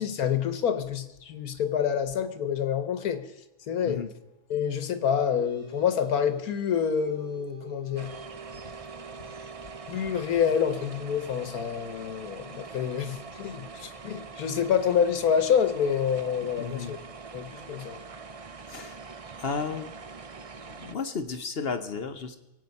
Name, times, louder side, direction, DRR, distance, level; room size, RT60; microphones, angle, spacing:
voice 1, 0.0-3.3 3.7-4.0 4.5-8.1 9.9-17.0 17.3-18.0, left 8 dB, 80° left, 1.5 m, -27 dB
sound 1, 4.7-15.6, right 3 dB, 85° right, 3.0 m, -49 dB
sound 2, 8.0-21.0, right 4 dB, 45° right, 0.4 m, -44 dB
voice 2, 16.6-17.0 18.7-19.0 19.4-19.9 20.7-22.4, left 5 dB, 50° left, 1.0 m, -33 dB
23.0 x 8.7 x 5.4 m
omnidirectional pair, 1.5 m